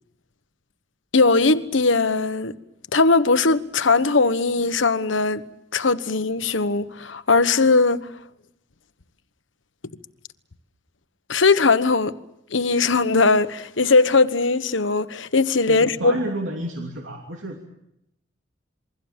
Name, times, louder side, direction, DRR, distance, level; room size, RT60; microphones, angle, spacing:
voice 1, 1.1-2.5 2.9-5.4 5.7-8.0 11.3-12.2 12.5-16.2, left 3 dB, 80° left, 1.2 m, -19 dB
voice 2, 15.7-17.6, right 1 dB, 80° right, 3.0 m, -30 dB
28.0 x 22.5 x 7.4 m
head